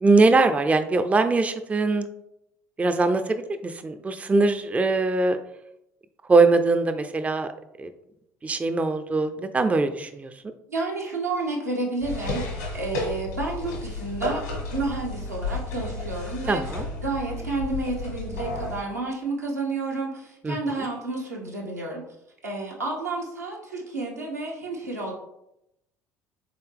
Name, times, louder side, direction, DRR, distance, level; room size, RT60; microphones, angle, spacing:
voice 1, 0.0-2.1 2.8-5.4 6.3-7.5 7.8-7.9 8.4-10.3 16.5-16.8 20.4-20.6, right 3 dB, 15° right, 9 dB, 0.4 m, -22 dB
voice 2, 10.7-14.4 14.7-16.6 17.0-22.0 22.4-25.1, right 3 dB, 90° right, -3 dB, 1.0 m, -30 dB
sound 1, 12.0-18.8, left 2 dB, 75° left, 1.5 m, -32 dB
4.0 x 3.7 x 3.4 m, 0.82 s
figure-of-eight pair, 60°, 9 cm